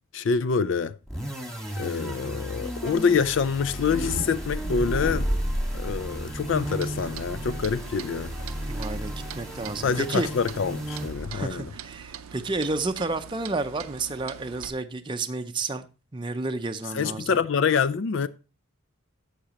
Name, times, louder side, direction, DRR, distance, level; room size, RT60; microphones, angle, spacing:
voice 1, 0.1-0.9 1.8-5.3 5.7-8.3 9.8-11.7 16.9-18.3, left 5 dB, 60° left, 0.4 m, -26 dB
sound 1, 1.1-11.5, equal, ahead, 1.6 m, -34 dB
sound 2, 3.7-9.5, equal, 85° left, 2.4 m, -33 dB
Clock, 6.6-14.7, right 8 dB, 80° right, 0.5 m, -43 dB
voice 2, 8.7-10.3 11.3-15.9 16.1-17.3, right 3 dB, 20° right, 0.5 m, -31 dB
11.5 x 7.4 x 2.9 m
head